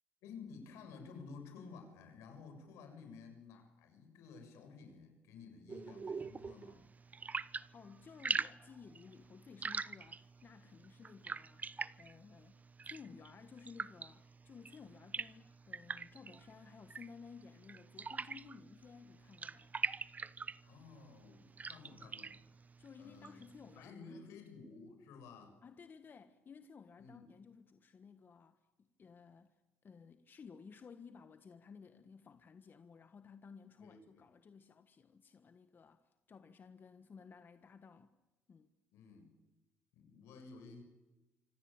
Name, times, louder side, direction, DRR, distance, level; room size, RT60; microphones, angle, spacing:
voice 1, 0.2-6.9 20.7-22.4 23.0-23.4 23.8-25.6 27.0-27.3 33.8-34.3 38.9-39.3 39.9-40.8, left 4 dB, 80° left, 6.9 m, -53 dB
sound 1, 5.7-23.9, right 5 dB, 35° right, 0.9 m, -45 dB
voice 2, 7.7-19.8 22.8-24.4 25.6-38.1 38.5-38.7, left 5 dB, 45° left, 1.5 m, -56 dB
26.0 x 25.0 x 8.9 m
supercardioid pair, 65°, 5 cm